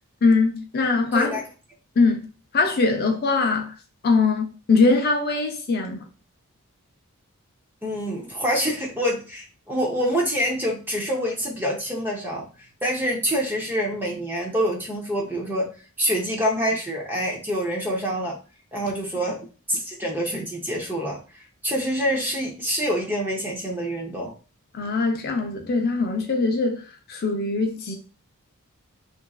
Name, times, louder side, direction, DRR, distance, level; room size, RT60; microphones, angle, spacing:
voice 1, 0.2-1.3 2.0-2.3 2.5-3.8 4.0-6.1 24.7-28.0, left 3 dB, 45° left, 0.5 m, -22 dB
voice 2, 7.8-15.7 16.0-18.4 18.7-24.3, equal, 10° right, 0.6 m, -26 dB
3.0 x 2.5 x 2.3 m
head